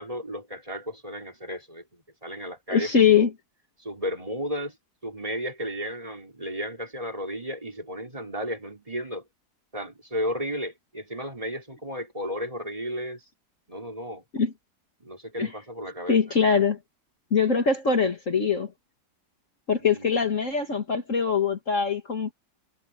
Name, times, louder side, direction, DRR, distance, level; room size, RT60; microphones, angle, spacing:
voice 1, 0.0-3.3 3.8-4.8 5.0-9.3 9.7-13.2 13.7-14.2 15.0-16.5 19.8-20.3, equal, 20° right, 4.0 m, -34 dB
voice 2, 2.7-3.3 14.3-14.5 15.4-15.5 16.1-16.8 17.3-18.7 19.7-22.3, left 6 dB, 45° left, 2.2 m, -22 dB
omnidirectional pair, 1.9 m